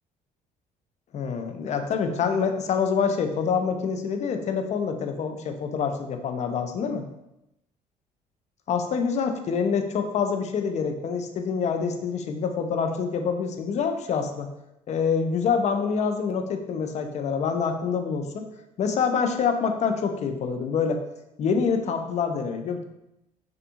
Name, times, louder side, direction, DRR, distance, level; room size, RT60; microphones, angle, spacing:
voice 1, 1.1-7.0 8.7-14.5 14.9-18.5 18.8-21.0 21.4-22.8, left 6 dB, 40° left, 6 dB, 0.4 m, -26 dB
2.6 x 2.4 x 2.5 m, 0.88 s
hypercardioid pair, 50°, 19 cm